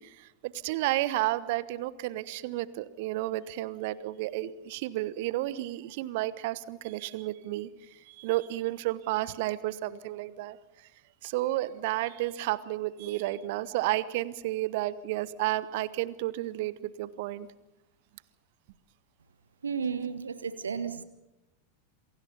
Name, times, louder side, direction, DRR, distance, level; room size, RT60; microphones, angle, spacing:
voice 1, 0.0-7.7 8.1-10.6 11.2-17.5, right 16 dB, 50° right, 18 dB, 1.0 m, -32 dB
voice 2, 19.6-21.0, right 6 dB, 70° right, 13 dB, 1.1 m, -33 dB
28.0 x 23.0 x 5.4 m, 1.0 s
figure-of-eight pair, 90°, 0 cm